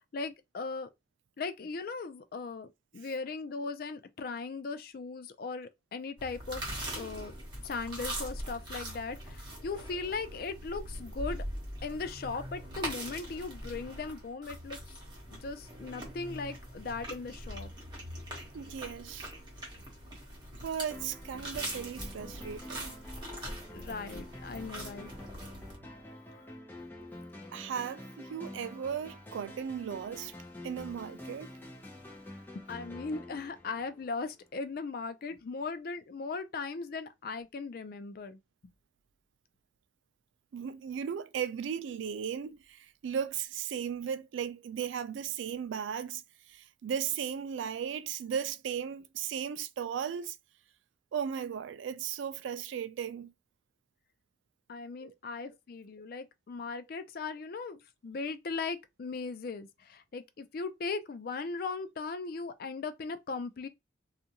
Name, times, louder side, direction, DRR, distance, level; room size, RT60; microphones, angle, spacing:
voice 1, 0.1-0.9 1.4-2.7 2.9-6.6 6.9-7.3 7.6-11.4 11.8-14.8 15.3-17.7 23.7-25.1 32.5-38.4 54.7-63.7, left 4 dB, 50° left, 0.4 m, -38 dB
sound 1, 6.2-25.7, right 1 dB, 25° right, 1.0 m, -42 dB
voice 2, 18.5-19.3 20.6-23.0 27.5-30.3 30.6-31.5 40.5-46.2 46.5-50.4 51.1-53.3 55.0-55.1, right 8 dB, 85° right, 0.3 m, -36 dB
sound 2, 20.9-34.4, left 1 dB, 10° left, 0.6 m, -48 dB
2.4 x 2.3 x 2.8 m
head